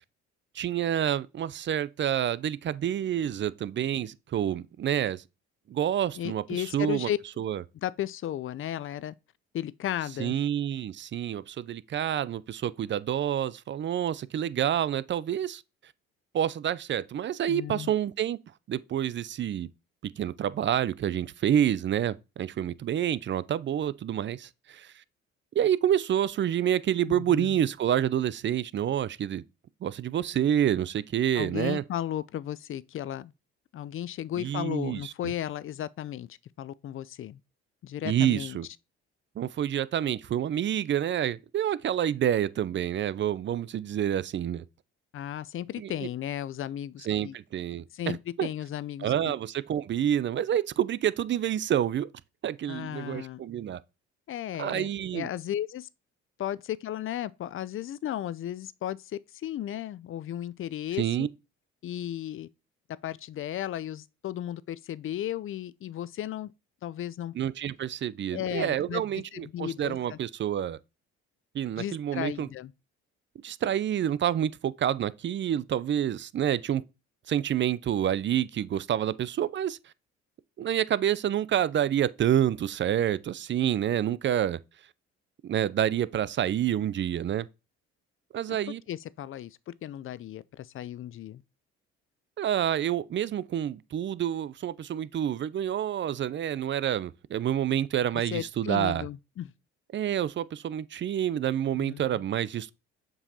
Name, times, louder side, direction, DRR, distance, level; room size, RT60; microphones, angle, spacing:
voice 1, 0.5-5.2 5.7-7.1 7.4-7.6 10.2-15.6 16.3-18.4 18.7-19.7 20.0-24.9 25.5-29.4 29.8-31.8 34.4-35.1 38.0-38.7 39.4-44.6 45.8-45.9 47.1-48.5 49.0-52.1 52.4-53.8 54.6-55.3 61.0-61.3 67.4-70.8 71.5-72.5 73.4-76.8 77.3-79.8 80.6-84.6 85.4-87.5 88.3-88.8 92.4-99.1 99.9-102.7, right 10 dB, 35° right, 0.4 m, -28 dB
voice 2, 6.1-7.4 7.8-9.1 9.5-10.3 17.5-17.9 27.1-27.6 31.3-33.3 33.7-37.4 37.8-38.6 45.1-47.4 47.9-49.3 52.7-53.4 54.3-55.9 56.4-61.3 61.8-62.5 63.0-66.5 66.8-67.3 68.3-69.0 69.3-70.2 71.8-72.7 88.5-91.4 98.3-99.5 101.7-102.2, left 11 dB, 40° left, 0.5 m, -35 dB
7.1 x 5.4 x 2.7 m
hypercardioid pair, 60°, 32 cm